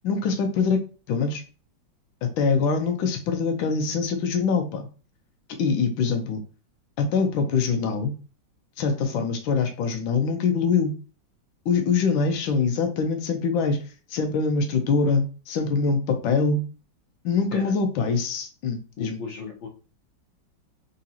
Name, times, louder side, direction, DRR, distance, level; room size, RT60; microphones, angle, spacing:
voice 1, 0.0-1.4 2.2-4.9 5.6-6.4 7.0-8.1 8.8-10.9 11.6-13.8 14.1-16.6 17.2-19.2, left 5 dB, 85° left, 5 dB, 1.6 m, -24 dB
voice 2, 19.0-19.7, left 4 dB, 50° left, -3 dB, 0.9 m, -35 dB
4.0 x 3.9 x 2.8 m, 0.35 s
omnidirectional pair, 2.1 m